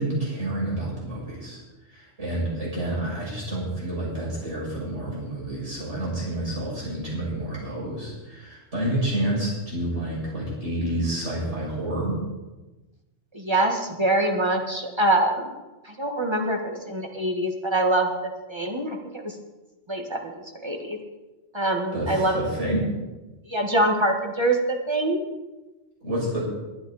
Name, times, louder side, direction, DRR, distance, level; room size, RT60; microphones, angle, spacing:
voice 1, 0.0-1.6 1.9-12.2 21.9-22.9 26.0-26.4, right 1 dB, 75° right, -5 dB, 6.7 m, -29 dB
voice 2, 13.3-15.5 15.8-18.1 18.5-19.4 19.9-21.0 21.5-22.4 23.5-24.6 24.9-25.2, right 1 dB, 20° right, 2 dB, 1.6 m, -24 dB
22.5 x 9.1 x 4.1 m, 1.1 s
omnidirectional pair, 1.2 m